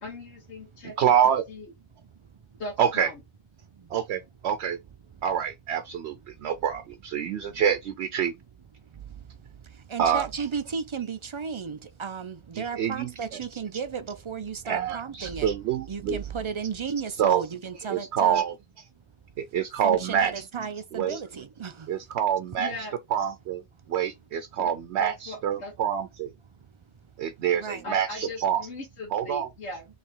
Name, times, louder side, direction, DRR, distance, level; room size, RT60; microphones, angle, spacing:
voice 1, 0.0-1.1 1.5-1.7 2.6-3.2 22.6-22.9 24.6-24.7 25.0-25.7 27.8-29.9, left 1 dB, 90° left, 1.6 m, -38 dB
voice 2, 1.0-1.4 2.8-3.1 3.9-4.8 5.2-8.3 10.0-10.3 12.5-13.1 14.7-16.2 17.2-17.4 17.9-18.5 19.4-20.4 20.9-21.2 21.9-22.7 23.1-23.6 23.9-26.3 27.2-28.7 29.1-29.5, right 9 dB, 80° right, 0.9 m, -26 dB
voice 3, 8.8-15.5 15.9-18.4 19.8-21.9 23.8-23.9 27.5-27.8, right 6 dB, 50° right, 0.3 m, -34 dB
3.3 x 3.0 x 4.4 m
omnidirectional pair, 1.1 m